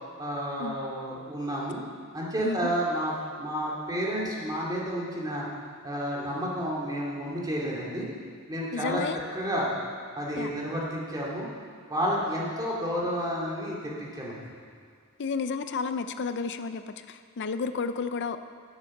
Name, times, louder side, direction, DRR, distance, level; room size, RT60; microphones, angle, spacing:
voice 1, 0.2-1.8 2.1-5.5 5.8-8.1 8.5-9.0 9.3-9.7 10.2-11.5 11.9-14.4, equal, 20° right, -5 dB, 2.4 m, -31 dB
voice 2, 8.7-9.2 10.4-10.5 15.2-18.4, left 4 dB, 55° left, 10 dB, 0.5 m, -32 dB
12.0 x 7.2 x 6.5 m, 2.2 s
head